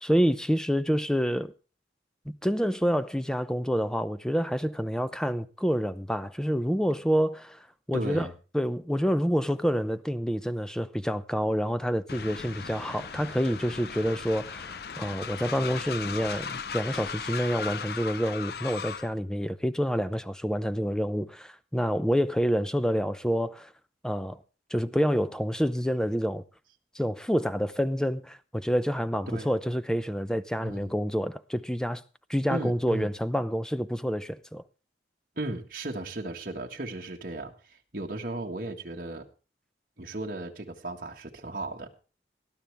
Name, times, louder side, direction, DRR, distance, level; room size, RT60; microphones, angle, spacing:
voice 1, 0.0-1.5 2.4-7.6 7.9-8.3 8.5-23.7 24.0-24.4 24.7-26.4 26.9-32.0 32.3-34.6, equal, 5° left, 0.6 m, -28 dB
voice 2, 7.9-8.3 29.3-29.5 30.6-30.9 32.5-33.1 35.4-39.3 40.0-41.9, right 2 dB, 50° right, 1.7 m, -35 dB
Train, 12.1-19.1, left 6 dB, 60° left, 0.6 m, -37 dB
20.0 x 12.0 x 3.5 m
head